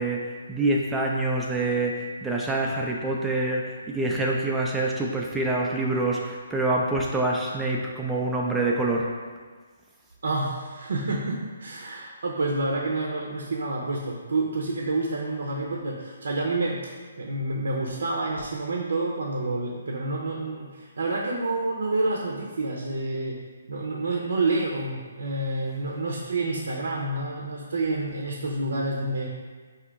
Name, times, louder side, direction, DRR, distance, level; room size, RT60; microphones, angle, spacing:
voice 1, 0.0-9.1, right 2 dB, 5° right, -2 dB, 0.3 m, -26 dB
voice 2, 10.2-23.4 23.7-29.3, right 2 dB, 80° right, -1 dB, 0.6 m, -28 dB
5.1 x 2.8 x 3.4 m, 1.5 s
hypercardioid pair, 165°, 0 cm